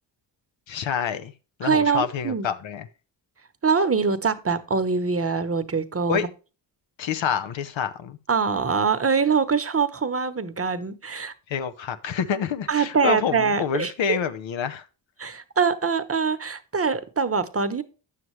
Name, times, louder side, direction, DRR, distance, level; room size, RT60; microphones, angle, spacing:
voice 1, 0.7-1.3 1.6-2.9 6.1-6.3 7.0-8.2 11.5-14.8, left 7 dB, 70° left, 0.8 m, -27 dB
voice 2, 1.6-2.5 3.6-6.3 8.3-11.3 12.7-14.2 15.2-17.8, right 5 dB, 30° right, 1.0 m, -24 dB
9.5 x 7.5 x 3.1 m
supercardioid pair, 55°, 48 cm